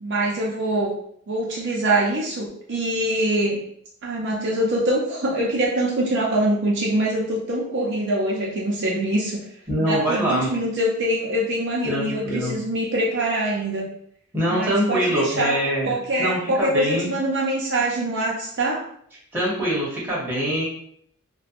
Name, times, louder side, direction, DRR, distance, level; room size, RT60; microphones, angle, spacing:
voice 1, 0.0-0.9 1.3-3.6 4.0-9.4 9.8-13.9 14.5-15.6 15.9-18.8, right 1 dB, 55° right, -3 dB, 0.5 m, -24 dB
voice 2, 9.7-10.5 11.8-12.6 14.3-15.9 16.2-17.1 19.3-20.6, equal, 10° right, -6 dB, 0.9 m, -23 dB
2.6 x 2.1 x 2.4 m, 0.66 s
head